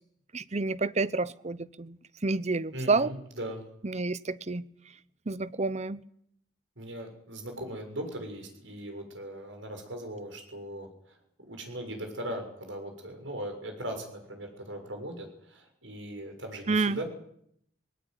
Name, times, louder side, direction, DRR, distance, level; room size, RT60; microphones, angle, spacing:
voice 1, 0.3-2.0 2.2-3.1 3.8-4.7 5.3-6.0 16.7-17.0, right 3 dB, 35° right, 0.8 m, -29 dB
voice 2, 2.7-3.6 6.8-17.0, right 1 dB, 80° right, 6.9 m, -39 dB
20.5 x 18.0 x 9.6 m
head